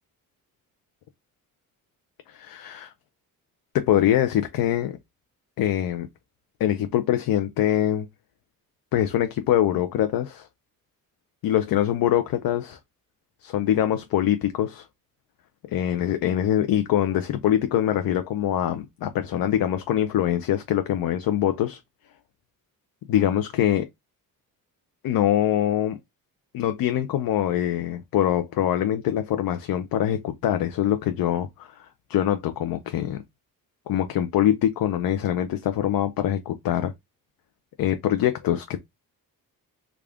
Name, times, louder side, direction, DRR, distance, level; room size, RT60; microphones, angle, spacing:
voice 1, 2.3-2.9 3.7-5.0 5.6-6.1 6.6-8.1 8.9-10.5 11.4-12.8 13.4-14.9 15.7-21.8 23.1-23.9 25.0-26.0 26.5-33.2 33.9-36.9 37.8-38.8, left 11 dB, 75° left, 0.5 m, -24 dB
3.4 x 2.4 x 3.4 m
cardioid pair, 120°, 35 cm